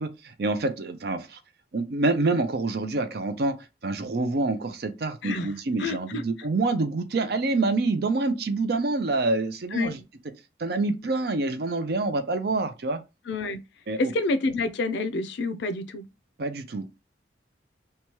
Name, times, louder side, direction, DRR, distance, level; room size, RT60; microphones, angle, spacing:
voice 1, 0.0-1.4 1.7-3.5 3.8-10.0 10.6-13.0 13.9-14.1 16.4-16.9, right 3 dB, 55° right, 0.5 m, -26 dB
voice 2, 5.8-6.2 9.7-9.9 13.3-13.6 14.0-16.1, left 3 dB, 65° left, 0.4 m, -28 dB
2.9 x 2.2 x 2.9 m
head